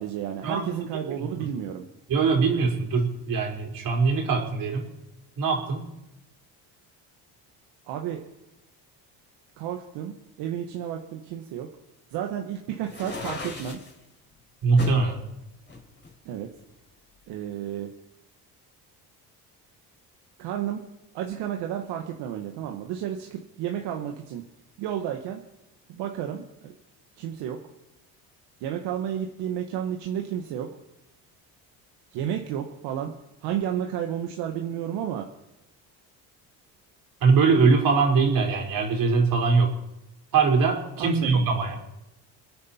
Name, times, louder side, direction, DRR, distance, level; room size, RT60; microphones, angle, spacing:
voice 1, 0.0-1.9 7.9-8.2 9.6-11.7 12.1-13.8 16.2-16.5 17.3-17.9 20.4-20.8 21.1-24.4 24.8-25.4 25.9-26.7 27.2-27.6 28.6-30.7 32.1-33.1 33.4-35.3 41.0-41.5, right 10 dB, 80° right, 3 dB, 1.4 m, -31 dB
voice 2, 2.1-4.9 5.4-5.8 14.6-15.2 37.2-39.7 40.3-41.8, right 4 dB, 55° right, 1 dB, 4.3 m, -22 dB
sound 1, 12.8-13.9 14.8-15.1 15.7-16.8, left 4 dB, 30° left, 4.2 m, -35 dB
27.5 x 9.6 x 4.4 m, 0.91 s
cardioid pair, 100°, 40 cm